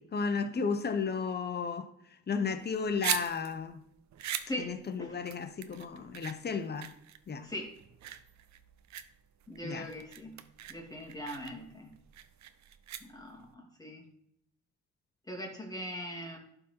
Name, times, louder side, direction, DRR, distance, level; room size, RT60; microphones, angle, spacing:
voice 1, 0.1-1.9 2.3-3.8 4.6-6.9 7.3-7.5 9.6-9.9, left 5 dB, 35° left, 0.9 m, -33 dB
sound 1, 2.6-13.5, right 10 dB, 65° right, 0.7 m, -41 dB
voice 2, 9.5-10.4 10.7-11.9 13.0-14.0 15.3-16.4, equal, 10° left, 2.4 m, -40 dB
11.5 x 4.0 x 4.4 m
cardioid pair, 90°, 30 cm